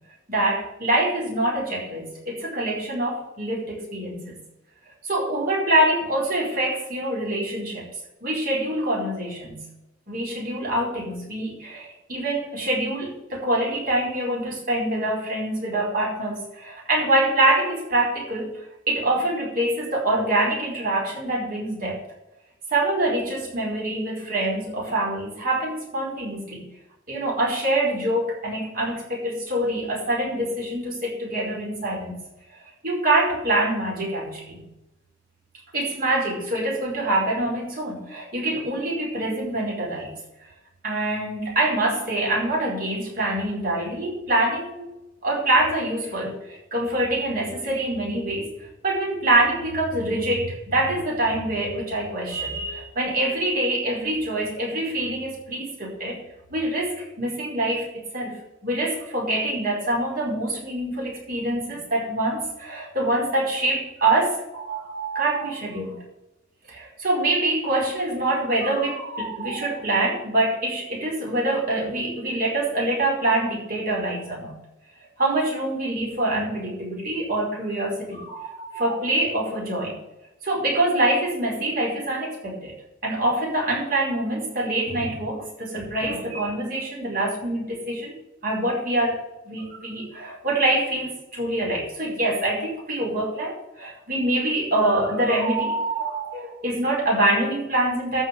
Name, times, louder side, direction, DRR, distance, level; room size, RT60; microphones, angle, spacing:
voice 1, 0.3-4.3 5.0-7.8 8.2-9.7 10.1-18.6 18.9-22.0 22.7-26.7 27.1-32.2 32.8-34.6 35.7-40.1 40.8-44.9 45.2-48.5 48.8-56.2 56.5-66.0 66.7-74.5 75.2-80.0 80.4-82.7 83.0-88.1 88.4-98.2, right 1 dB, 50° right, -2 dB, 4.9 m, -25 dB
13.5 x 5.4 x 7.1 m, 0.93 s
head